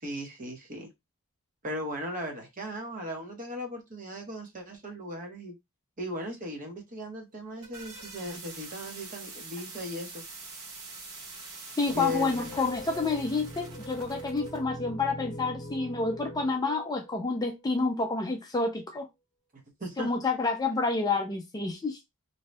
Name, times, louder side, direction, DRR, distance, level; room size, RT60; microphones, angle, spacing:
voice 1, 0.0-0.9 1.6-5.5 6.0-10.2 11.9-12.6 19.5-20.1, equal, 35° right, 0.9 m, -37 dB
sound 1, 7.3-14.6, right 3 dB, 80° right, 1.4 m, -45 dB
voice 2, 11.8-19.1 20.0-22.0, left 3 dB, 15° left, 0.4 m, -29 dB
sound 2, 11.9-18.0, equal, 35° left, 0.9 m, -42 dB
2.7 x 2.2 x 3.1 m
head